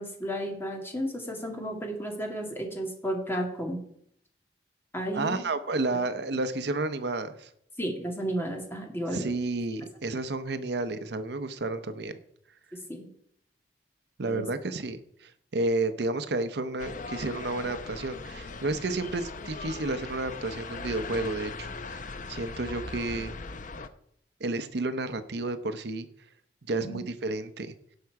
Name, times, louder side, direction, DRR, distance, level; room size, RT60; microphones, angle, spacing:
voice 1, 0.0-3.8 4.9-5.4 7.8-9.3 12.9-13.1 14.3-14.5 26.8-27.0, equal, 15° left, 1 dB, 2.1 m, -33 dB
voice 2, 5.1-7.5 9.1-12.1 14.2-23.3 24.4-26.1 26.7-27.7, right 2 dB, 65° right, 11 dB, 0.7 m, -31 dB
sound 1, 16.8-23.9, left 3 dB, 45° left, 0.7 m, -39 dB
17.0 x 5.8 x 4.7 m, 0.71 s
head